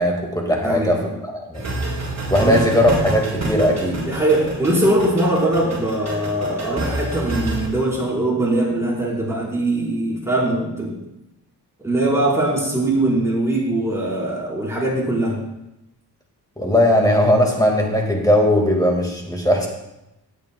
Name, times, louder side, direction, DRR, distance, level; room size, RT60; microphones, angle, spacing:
voice 1, 0.0-1.6 2.3-4.0 16.6-19.7, left 1 dB, 10° left, 0 dB, 1.8 m, -18 dB
voice 2, 0.6-1.1 2.4-2.6 4.0-10.9 11.8-15.4, right 1 dB, 5° right, -6 dB, 4.2 m, -21 dB
sound 1, 1.5-7.7, right 2 dB, 40° right, 4.1 m, -28 dB
17.0 x 9.1 x 2.3 m, 0.89 s
wide cardioid pair, 120°, 40 cm